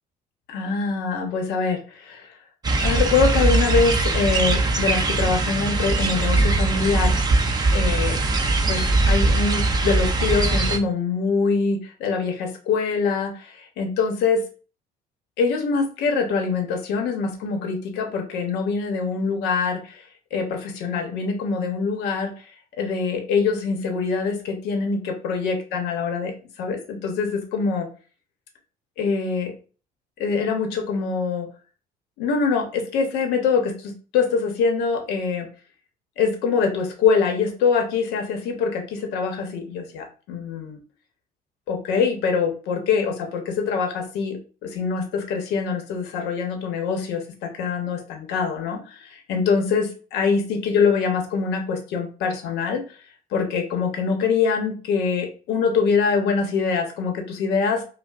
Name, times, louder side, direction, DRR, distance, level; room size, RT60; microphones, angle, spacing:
voice 1, 0.5-2.3 2.8-7.2 7.7-8.2 8.7-14.4 15.4-20.0 20.3-22.3 22.8-26.3 26.6-27.9 29.0-29.5 30.2-31.5 32.2-35.5 36.2-40.8 41.7-52.8 53.3-57.8, left 5 dB, 90° left, 4 dB, 0.9 m, -24 dB
sound 1, 2.6-10.8, right 2 dB, 25° right, 0.7 m, -21 dB
5.4 x 2.1 x 2.4 m, 0.37 s
cardioid pair, 110°, 17 cm